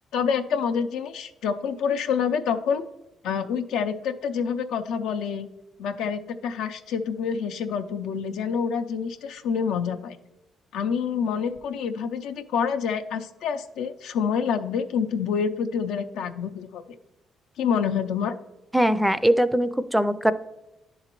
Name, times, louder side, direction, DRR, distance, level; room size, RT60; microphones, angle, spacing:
voice 1, 0.1-2.8 3.2-5.5 5.8-10.2 10.7-16.8 17.6-18.3, left 6 dB, 85° left, 7 dB, 0.5 m, -27 dB
voice 2, 18.7-20.3, equal, 5° right, 13 dB, 0.4 m, -21 dB
10.5 x 3.9 x 3.0 m, 1.0 s
cardioid pair, 90°, 0 cm